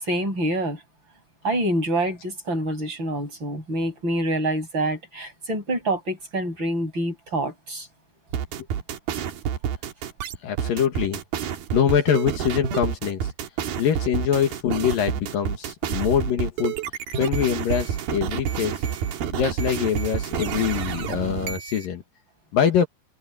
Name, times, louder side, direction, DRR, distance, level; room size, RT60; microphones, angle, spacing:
voice 1, 0.0-0.8 1.4-7.9, right 1 dB, 30° right, 8.6 m, -26 dB
sound 1, 8.3-21.9, right 8 dB, 75° right, 3.6 m, -28 dB
voice 2, 10.4-13.2 13.8-16.8 17.2-18.8 19.3-22.0 22.5-22.9, left 8 dB, 65° left, 3.3 m, -24 dB
omnidirectional pair, 4.4 m